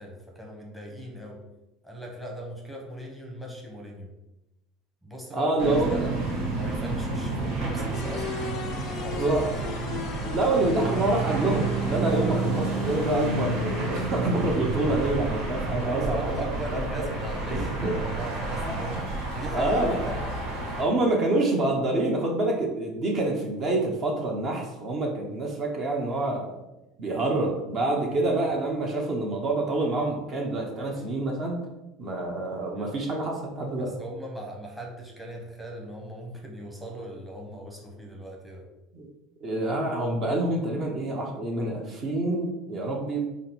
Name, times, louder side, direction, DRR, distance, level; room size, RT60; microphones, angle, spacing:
voice 1, 0.0-1.4 1.8-4.1 5.0-5.5 5.9-6.2 6.5-8.4 8.7-9.7 15.8-19.0 19.3-20.2 28.1-28.3 32.7-32.9 33.8-38.6, right 1 dB, 5° right, -1 dB, 0.9 m, -39 dB
voice 2, 5.3-6.2 9.2-9.6 10.2-17.1 17.5-18.0 18.6-18.8 19.5-20.0 20.8-26.6 27.0-31.6 32.0-33.9 38.9-39.1 39.4-43.2, right 2 dB, 45° right, 0 dB, 0.8 m, -27 dB
sound 1, 5.6-20.8, right 2 dB, 75° right, 1.3 m, -30 dB
sound 2, 7.9-17.1, left 6 dB, 55° left, 0.3 m, -41 dB
3.6 x 2.0 x 4.3 m, 0.94 s
supercardioid pair, 90°, 0 cm